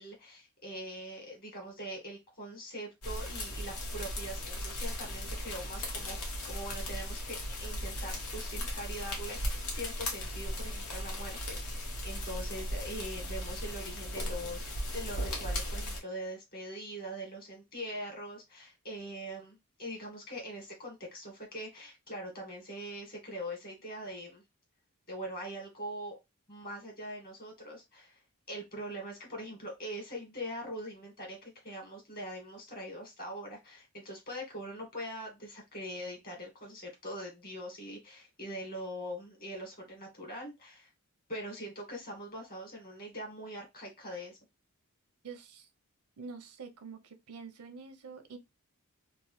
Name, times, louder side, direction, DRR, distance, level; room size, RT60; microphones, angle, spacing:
voice 1, 0.0-24.4 25.1-26.2 26.5-28.2 28.5-40.9 41.3-44.4, equal, 45° left, 1.4 m, -42 dB
sound 1, 3.0-16.0, left 1 dB, 80° left, 1.0 m, -37 dB
voice 2, 45.2-45.7 46.2-48.4, right 5 dB, 75° right, 0.6 m, -46 dB
3.1 x 2.1 x 2.9 m
head